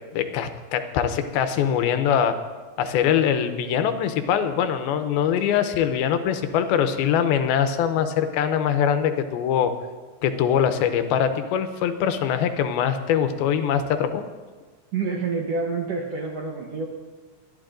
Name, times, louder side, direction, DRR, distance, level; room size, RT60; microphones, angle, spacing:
voice 1, 0.1-2.3 2.8-9.7 10.2-14.2, left 8 dB, 85° left, 9 dB, 2.6 m, -23 dB
voice 2, 14.9-16.9, right 4 dB, 75° right, -1 dB, 1.5 m, -27 dB
23.5 x 11.5 x 2.6 m, 1.4 s
omnidirectional pair, 4.3 m